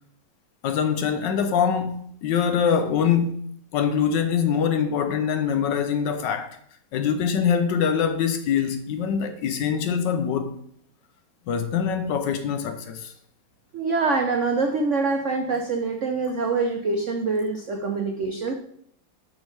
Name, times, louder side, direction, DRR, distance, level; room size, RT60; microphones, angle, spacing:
voice 1, 0.6-3.4 3.7-6.6 6.9-10.6 11.5-13.1, left 7 dB, 75° left, 1.2 m, -24 dB
voice 2, 13.7-18.5, right 3 dB, 75° right, 0.7 m, -25 dB
7.2 x 6.3 x 3.2 m
omnidirectional pair, 2.2 m